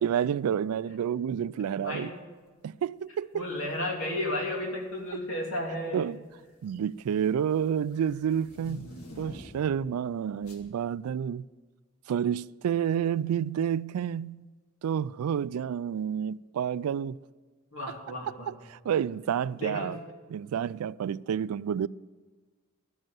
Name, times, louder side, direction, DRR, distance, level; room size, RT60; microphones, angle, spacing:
voice 1, 0.0-2.1 2.6-3.4 5.9-6.2 6.6-11.4 12.1-14.5 14.8-17.2 17.9-18.0 18.5-20.0 20.3-21.9, right 8 dB, 85° right, 0.3 m, -29 dB
voice 2, 3.3-6.1 17.7-18.5 19.5-19.9, left 1 dB, 70° left, 2.9 m, -33 dB
sound 1, 3.5-3.8 4.8-5.2 5.5-9.8 10.4-10.7, equal, 90° left, 2.1 m, -48 dB
13.0 x 7.8 x 7.5 m
head